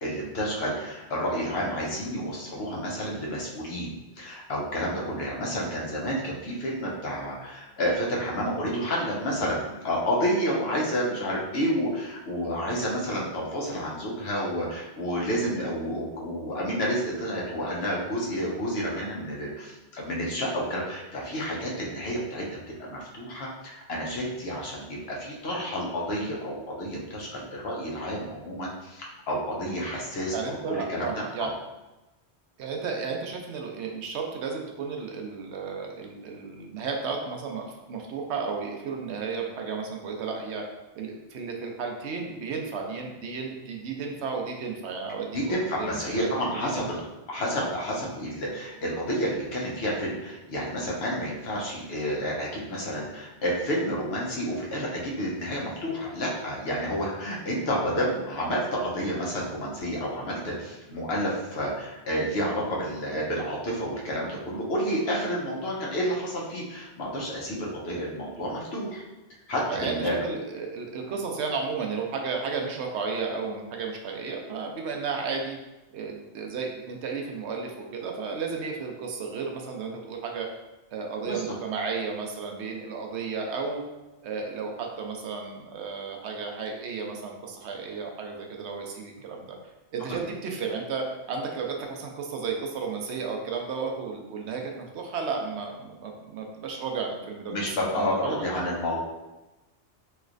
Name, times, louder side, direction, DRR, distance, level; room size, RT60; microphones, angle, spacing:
voice 1, 0.0-22.5 22.8-31.5 45.3-47.0 47.3-69.0 69.5-70.2 81.3-81.4 97.5-99.0, equal, 70° left, -3 dB, 1.0 m, -30 dB
voice 2, 30.3-31.5 32.6-40.6 40.9-46.3 46.6-46.9 69.7-75.6 75.9-80.5 80.9-83.8 84.2-89.6 89.9-97.5 98.0-98.5, right 5 dB, 80° right, 1 dB, 0.9 m, -33 dB
3.1 x 3.1 x 2.5 m, 1.0 s
omnidirectional pair, 1.1 m